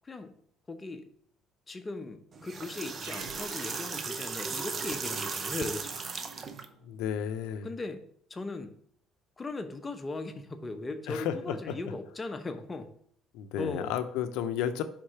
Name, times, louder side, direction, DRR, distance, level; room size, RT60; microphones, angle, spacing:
voice 1, 0.0-0.3 0.7-1.1 1.7-6.0 7.6-8.0 8.3-8.7 9.4-12.9 13.6-14.0, left 3 dB, 20° left, 8 dB, 0.7 m, -38 dB
sound 1, 2.3-6.6, right 4 dB, 35° right, 0.6 m, -36 dB
Growling, 2.9-7.6, right 6 dB, 90° right, 0.7 m, -54 dB
voice 2, 6.8-7.7 11.1-11.7 13.3-14.8, left 9 dB, 85° left, 10 dB, 0.5 m, -32 dB
4.8 x 3.7 x 5.6 m, 0.64 s
cardioid pair, 105°, 0 cm